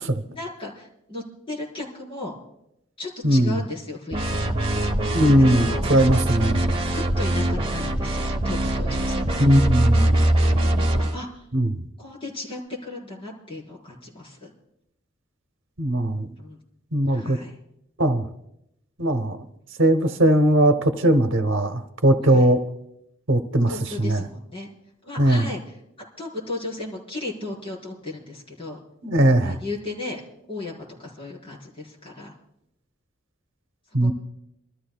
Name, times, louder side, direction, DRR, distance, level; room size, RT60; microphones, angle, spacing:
voice 1, 0.3-2.3 3.0-4.5 5.5-5.8 6.9-9.4 10.6-11.5 12.0-14.5 16.4-16.6 17.1-17.5 22.2-22.5 23.7-24.7 25.0-25.8 26.2-28.8 29.4-30.2 30.5-32.3 34.0-34.1, left 2 dB, 30° left, -4 dB, 4.6 m, -35 dB
voice 2, 3.2-3.6 5.1-6.6 9.4-10.1 11.5-11.8 15.8-16.3 16.9-17.4 18.0-18.3 19.0-19.5 19.8-22.6 23.3-23.7 24.0-24.2 25.2-25.4 29.0-29.6 33.9-34.1, right 1 dB, 75° right, 8 dB, 1.0 m, -19 dB
sound 1, 4.1-11.2, right 1 dB, 30° right, 1.1 m, -22 dB
28.5 x 13.5 x 2.3 m, 0.83 s
head